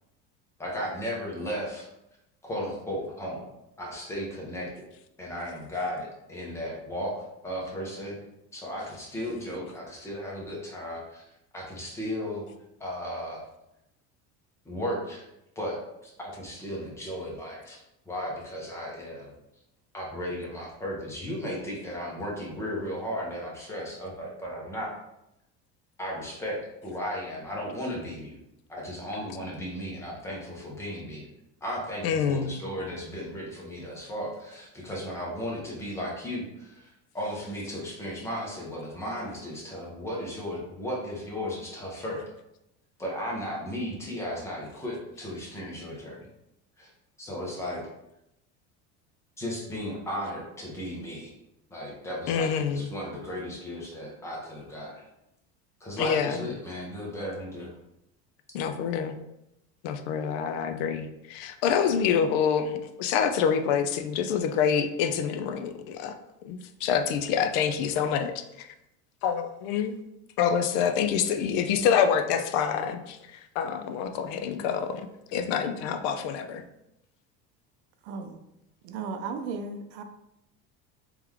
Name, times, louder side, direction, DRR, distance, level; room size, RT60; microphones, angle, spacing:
voice 1, 0.6-1.9 2.4-3.5 3.8-4.7 5.2-8.2 8.5-11.2 11.5-12.4 12.8-13.4 14.6-15.2 15.6-17.8 18.1-19.3 19.9-24.9 26.0-28.4 28.7-31.3 31.6-42.3 43.0-46.3 46.8-46.9 47.2-47.8 49.4-51.3 51.7-55.1 55.8-57.7, equal, 10° left, -3 dB, 0.6 m, -35 dB
voice 2, 32.0-32.6 52.3-52.8 56.0-56.4 58.5-59.2 59.8-66.1 66.4-68.3 68.6-68.7 69.2-69.9 70.4-73.2 73.6-76.6, left 7 dB, 65° left, 8 dB, 0.5 m, -26 dB
voice 3, 78.0-78.4 78.8-80.0, right 4 dB, 60° right, 6 dB, 0.5 m, -35 dB
3.6 x 3.1 x 3.4 m, 0.86 s
cardioid pair, 180°, 33 cm